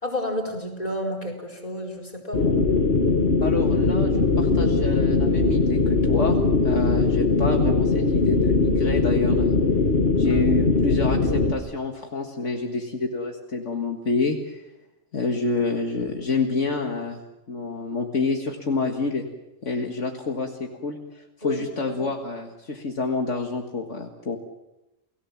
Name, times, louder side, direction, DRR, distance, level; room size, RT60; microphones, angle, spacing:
voice 1, 0.0-2.6 10.2-10.4 21.4-22.0, equal, 30° left, 3 dB, 4.6 m, -31 dB
sound 1, 2.3-11.5, left 3 dB, 50° left, 1.8 m, -20 dB
voice 2, 3.4-9.5 10.2-14.6 15.1-17.2 17.5-19.2 19.6-24.4, left 3 dB, 65° left, 2 dB, 2.1 m, -28 dB
29.0 x 18.0 x 7.3 m, 0.98 s
omnidirectional pair, 1.3 m